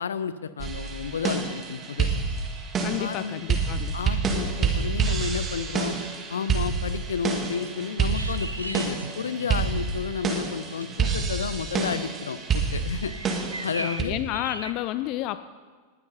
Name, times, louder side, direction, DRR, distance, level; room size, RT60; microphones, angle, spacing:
voice 1, 0.0-2.2 3.0-3.4 3.9-6.0 6.3-13.1 13.6-14.1, left 6 dB, 70° left, 14 dB, 0.8 m, -32 dB
sound 1, 0.6-14.0, right 5 dB, 25° right, 2.3 m, -28 dB
voice 2, 2.8-4.0 13.8-15.4, left 15 dB, 40° left, 14 dB, 0.5 m, -31 dB
sound 2, 8.1-14.7, right 2 dB, 85° right, 0.9 m, -40 dB
19.5 x 11.0 x 5.7 m, 1.5 s
figure-of-eight pair, 90°, 0 cm